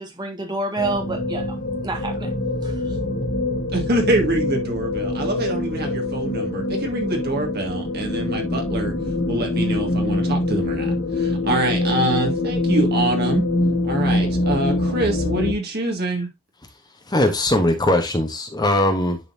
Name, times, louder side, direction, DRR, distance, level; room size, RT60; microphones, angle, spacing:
voice 1, 0.0-1.5 1.8-2.3 2.6-2.7, right 2 dB, 20° right, 1.7 m, -28 dB
sound 1, 0.8-15.5, left 2 dB, 50° left, 1.3 m, -24 dB
voice 2, 3.7-8.9 9.3-13.4 13.8-16.3, right 1 dB, 50° right, 2.0 m, -25 dB
voice 3, 17.1-19.2, left 1 dB, 20° left, 0.9 m, -20 dB
10.5 x 3.9 x 2.7 m
head